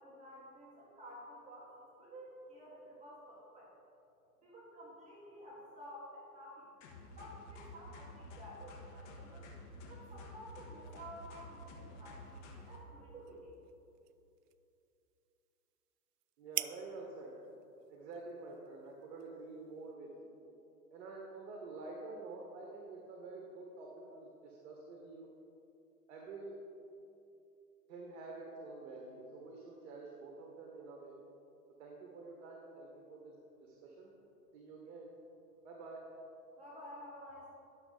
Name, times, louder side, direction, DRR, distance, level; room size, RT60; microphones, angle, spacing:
voice 1, 0.0-3.7 4.4-6.7 7.1-9.5 9.9-13.5 36.6-37.5, equal, 15° right, -6 dB, 1.3 m, -52 dB
sound 1, 6.8-12.8, left 1 dB, 45° left, 1.4 m, -51 dB
sound 2, 12.2-19.9, right 14 dB, 70° right, 0.5 m, -49 dB
voice 2, 16.4-17.3 17.9-20.3 20.9-25.3 26.1-26.5 27.9-31.1 31.8-33.3 33.6-34.1 34.5-35.1 35.6-36.0, right 3 dB, 50° right, -1 dB, 1.4 m, -48 dB
10.5 x 6.5 x 3.9 m, 2.8 s
hypercardioid pair, 130°, 49 cm